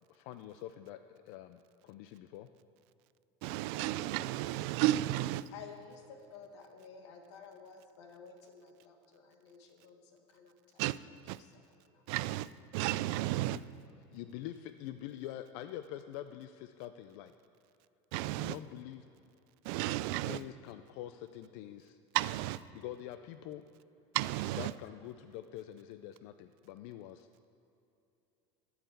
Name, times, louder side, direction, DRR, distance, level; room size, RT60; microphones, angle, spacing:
voice 1, 0.1-2.5 13.5-13.6 14.1-17.3 18.4-19.0 20.2-22.0 22.7-23.6 24.6-27.3, left 12 dB, 70° left, 0.5 m, -45 dB
voice 2, 3.4-5.4 10.8-11.0 11.3-11.4 12.1-13.6 18.1-18.6 19.6-20.4 22.1-22.6 24.1-24.7, right 16 dB, 70° right, 0.4 m, -33 dB
voice 3, 5.5-10.8 11.4-12.0, left 6 dB, 85° left, 1.5 m, -53 dB
12.5 x 4.8 x 7.9 m
supercardioid pair, 125°, 14 cm